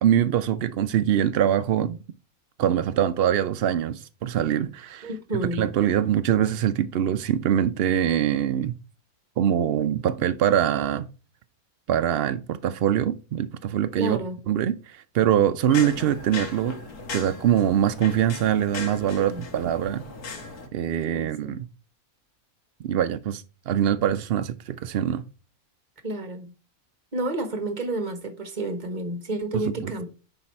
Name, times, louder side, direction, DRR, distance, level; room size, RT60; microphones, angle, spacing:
voice 1, 0.0-2.0 2.6-5.1 5.6-8.7 9.4-11.1 11.9-14.2 14.5-16.8 17.1-20.0 20.7-21.6 22.8-25.2 29.5-29.9, right 10 dB, 75° right, 0.5 m, -23 dB
voice 2, 5.0-5.7 14.0-14.4 19.3-19.4 21.1-21.6 26.0-26.5 27.1-30.1, right 2 dB, 30° right, 1.3 m, -30 dB
sound 1, 15.7-20.7, left 4 dB, 90° left, 2.0 m, -37 dB
9.9 x 4.0 x 4.2 m
omnidirectional pair, 1.6 m